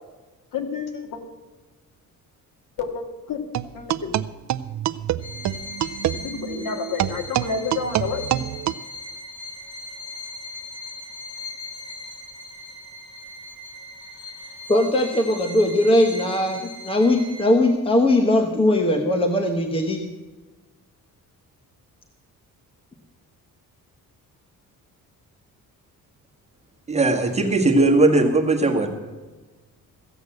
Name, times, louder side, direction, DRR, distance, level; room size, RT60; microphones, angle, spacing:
voice 1, 0.5-1.2 2.8-3.4 3.7-4.2 6.1-8.2, left 5 dB, 65° left, 5 dB, 2.0 m, -29 dB
sound 1, 3.5-8.7, right 12 dB, 55° right, 0.5 m, -27 dB
Bowed string instrument, 5.2-17.7, left 2 dB, 45° left, 3.1 m, -39 dB
voice 2, 14.7-20.0, left 1 dB, 15° left, 5 dB, 1.0 m, -20 dB
voice 3, 26.9-28.9, right 2 dB, 20° right, 2 dB, 1.5 m, -18 dB
15.0 x 8.1 x 7.7 m, 1.3 s
cardioid pair, 155°, 34 cm